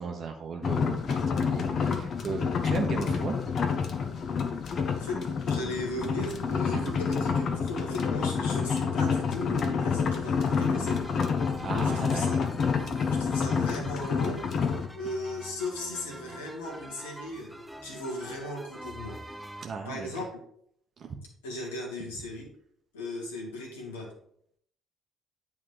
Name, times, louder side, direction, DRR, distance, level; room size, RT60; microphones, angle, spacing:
voice 1, 0.0-3.4 6.8-6.9 11.6-12.4 13.0-13.2 19.6-20.1 21.0-21.2, right 5 dB, 45° right, 3 dB, 0.9 m, -36 dB
sound 1, 0.6-14.9, left 6 dB, 45° left, 0.8 m, -28 dB
voice 2, 4.6-11.4 11.8-12.4 12.7-14.7 14.9-20.4 21.4-22.5 22.9-24.1, left 1 dB, 75° left, -1 dB, 1.5 m, -37 dB
sound 2, 10.4-19.7, right 1 dB, 5° right, 0.7 m, -45 dB
8.8 x 3.6 x 4.7 m, 0.66 s
figure-of-eight pair, 45°, 0 cm